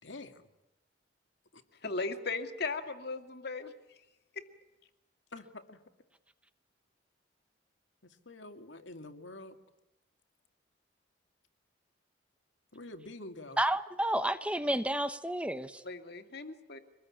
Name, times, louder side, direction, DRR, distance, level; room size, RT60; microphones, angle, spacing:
voice 1, 0.0-0.5 1.5-1.6 5.3-5.8 8.0-9.6 12.7-13.6, left 2 dB, 80° left, 6 dB, 2.3 m, -47 dB
voice 2, 1.8-4.0 4.3-4.4 15.8-16.8, left 3 dB, 60° left, 7 dB, 2.4 m, -37 dB
voice 3, 13.6-15.8, right 1 dB, 5° right, 11 dB, 0.9 m, -31 dB
25.5 x 20.5 x 8.7 m, 0.93 s
head